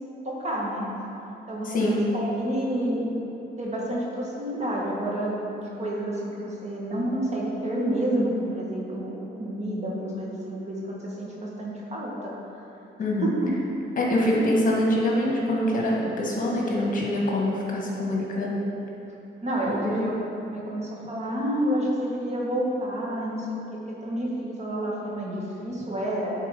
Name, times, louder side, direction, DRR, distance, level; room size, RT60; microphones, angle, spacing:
voice 1, 0.3-0.9 1.5-3.2 3.6-12.3 13.2-13.4 14.3-14.4 19.4-20.1 20.5-26.3, right 1 dB, 35° right, -4 dB, 1.8 m, -29 dB
voice 2, 1.7-2.1 13.0-13.3 14.0-18.6 19.7-20.1, left 1 dB, 45° left, -3 dB, 1.7 m, -25 dB
9.5 x 4.1 x 5.4 m, 3.0 s
cardioid pair, 90°, 20 cm